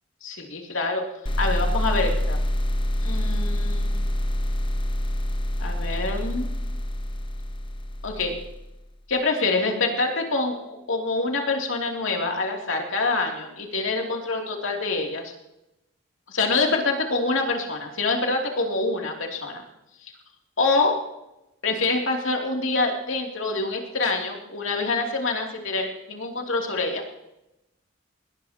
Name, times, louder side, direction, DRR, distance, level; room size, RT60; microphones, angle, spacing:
voice 1, 0.2-1.0 1.4-2.4 3.0-4.1 5.6-6.5 8.0-8.3 9.1-15.3 16.3-19.6 20.6-21.0 21.6-27.0, left 3 dB, 75° left, 1 dB, 2.9 m, -26 dB
sound 1, 1.3-8.8, left 1 dB, 25° left, 0.7 m, -26 dB
21.0 x 19.0 x 2.9 m, 0.90 s
head